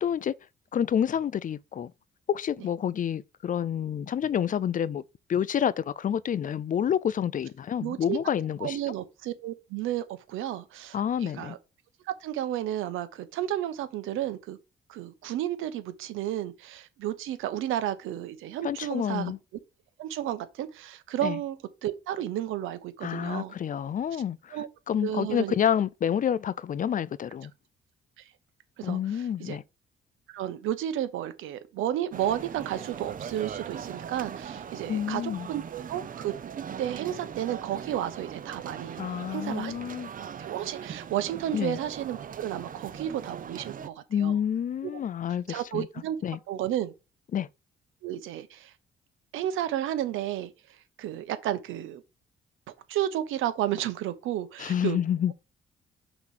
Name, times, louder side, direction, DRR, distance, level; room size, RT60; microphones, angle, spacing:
voice 1, 0.0-0.3 0.7-1.9 2.3-5.0 5.3-8.8 10.9-11.6 18.6-19.4 21.2-21.4 23.0-24.6 24.9-27.5 28.8-29.6 34.9-35.5 39.0-40.1 41.5-41.8 44.1-45.9 46.2-46.4 47.3-47.5 54.6-55.3, left 9 dB, 40° left, 0.5 m, -28 dB
voice 2, 7.8-8.2 8.6-11.6 12.1-14.6 14.9-19.3 20.0-21.6 21.8-23.5 24.5-24.7 25.0-25.6 28.2-28.3 28.8-29.6 30.3-36.3 36.8-39.0 39.3-39.7 40.2-44.4 44.8-44.9 45.5-46.2 46.5-46.9 48.0-48.7 49.3-50.5 51.0-52.0 52.9-55.0, right 12 dB, 90° right, 1.0 m, -32 dB
sound 1, 32.1-43.9, right 7 dB, 45° right, 0.7 m, -40 dB
6.0 x 3.2 x 5.8 m
cardioid pair, 90°, 20 cm